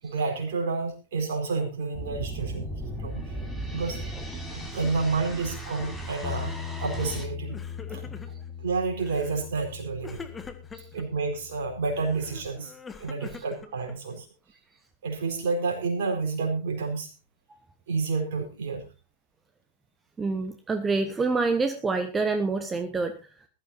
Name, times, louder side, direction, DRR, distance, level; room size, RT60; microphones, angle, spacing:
voice 1, 0.0-2.7 3.0-3.4 3.7-4.0 4.5-6.5 6.8-7.6 7.9-8.0 8.6-10.4 10.9-12.7 13.0-14.3 15.0-17.1 17.9-18.9, right 4 dB, 55° right, 2 dB, 4.6 m, -30 dB
sound 1, 1.9-7.2, right 1 dB, ahead, 5.4 m, -36 dB
Bass guitar, 6.2-12.5, left 8 dB, 35° left, 2.4 m, -40 dB
Crying sobbing, 6.9-7.2 7.5-8.5 9.0-9.5 10.0-11.1 11.9-14.2, left 5 dB, 15° left, 1.8 m, -44 dB
voice 2, 20.2-23.2, right 3 dB, 15° right, 8 dB, 1.2 m, -27 dB
21.0 x 13.5 x 2.8 m, 0.30 s
figure-of-eight pair, 90°, 0 cm